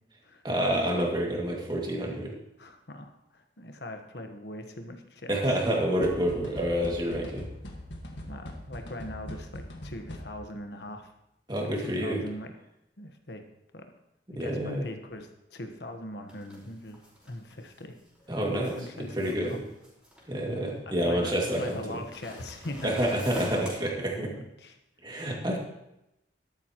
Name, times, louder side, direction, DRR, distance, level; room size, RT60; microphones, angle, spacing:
voice 1, 0.4-2.3 5.3-7.5 11.5-12.2 14.3-14.9 18.3-19.6 20.3-22.0 22.8-24.3 25.0-25.6, equal, 25° right, -1 dB, 2.3 m, -28 dB
voice 2, 2.6-5.6 8.3-11.1 11.6-12.5 13.0-13.4 13.7-13.9 14.4-17.0 17.2-18.0 18.6-19.7 20.9-23.0 24.1-24.8, left 1 dB, 70° left, 6 dB, 1.3 m, -41 dB
sound 1, 6.0-10.6, left 1 dB, 85° left, 1.8 m, -41 dB
sound 2, 16.3-20.7 21.3-23.7, left 1 dB, 5° right, 4.6 m, -44 dB
13.0 x 12.0 x 3.1 m, 0.86 s
head